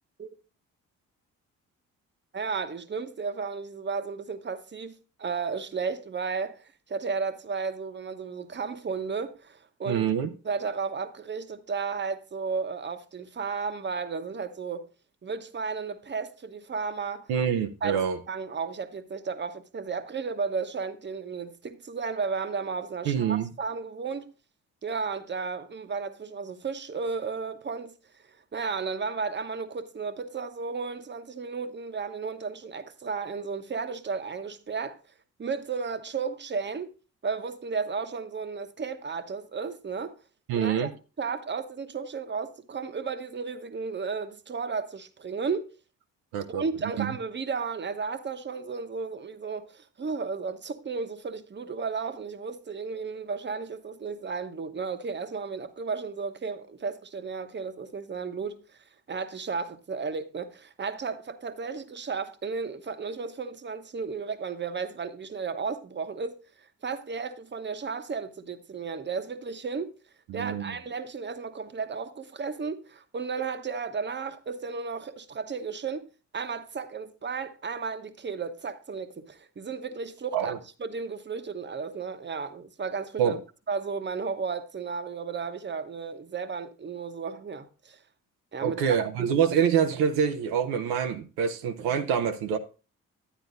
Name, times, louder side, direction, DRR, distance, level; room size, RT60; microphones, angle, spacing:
voice 1, 2.3-6.6 6.9-10.1 10.4-14.9 15.2-17.3 17.8-18.0 18.3-24.3 24.8-27.9 28.3-35.0 35.4-36.9 37.2-40.1 40.5-40.9 41.2-45.6 46.5-58.6 59.1-66.4 66.8-69.9 70.3-76.1 76.3-80.5 80.8-83.4 83.7-88.0 88.5-89.3, right 5 dB, 30° right, 1.0 m, -33 dB
voice 2, 9.9-10.3 17.3-18.2 23.0-23.5 40.5-40.9 46.3-46.6 47.0-47.1 70.3-70.8 80.3-80.6 83.2-83.4 88.6-92.6, right 8 dB, 85° right, 0.7 m, -26 dB
10.0 x 9.0 x 2.6 m
supercardioid pair, 50°, 36 cm